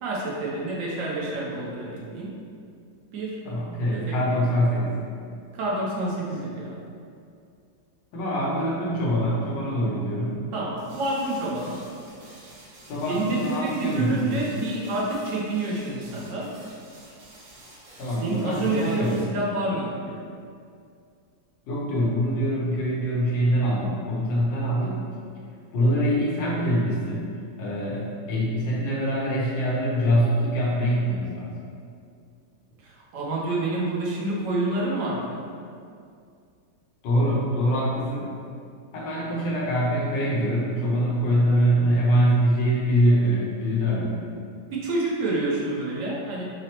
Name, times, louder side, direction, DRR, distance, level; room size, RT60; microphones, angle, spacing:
voice 1, 0.0-2.4 3.1-3.4 3.9-4.2 5.5-6.8 10.5-11.9 13.1-16.5 18.2-20.2 32.8-35.4 44.7-46.4, right 2 dB, 60° right, -4 dB, 0.9 m, -28 dB
voice 2, 3.4-5.0 8.1-10.3 12.9-14.4 18.0-19.4 21.7-25.0 25.7-27.3 27.6-31.5 37.0-38.3 38.9-44.2, equal, 85° left, -5 dB, 1.5 m, -24 dB
sound 1, 10.8-19.3, right 1 dB, 80° right, 1.4 m, -50 dB
5.6 x 2.0 x 2.9 m, 2.3 s
omnidirectional pair, 2.0 m